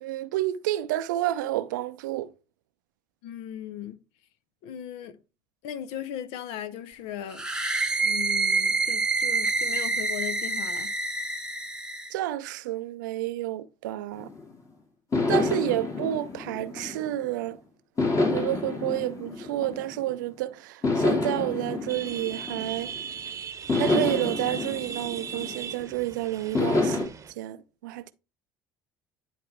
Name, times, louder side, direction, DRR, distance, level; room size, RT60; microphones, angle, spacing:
voice 1, 0.0-2.3 12.1-14.3 15.3-17.6 18.2-22.9 23.8-27.1 27.4-28.1, right 14 dB, 75° right, 0.5 m, -30 dB
voice 2, 3.2-4.0 4.6-5.2 5.6-7.4 8.0-10.9, left 10 dB, 65° left, 0.8 m, -37 dB
sound 1, 7.3-12.1, right 3 dB, 10° right, 1.1 m, -27 dB
sound 2, 14.1-14.5 15.1-17.4 18.0-20.2 20.8-23.1 23.7-25.9 26.5-27.1, left 3 dB, 30° left, 2.6 m, -28 dB
sound 3, 21.9-27.3, right 7 dB, 30° right, 1.0 m, -38 dB
10.0 x 4.4 x 3.3 m
figure-of-eight pair, 60°, 10 cm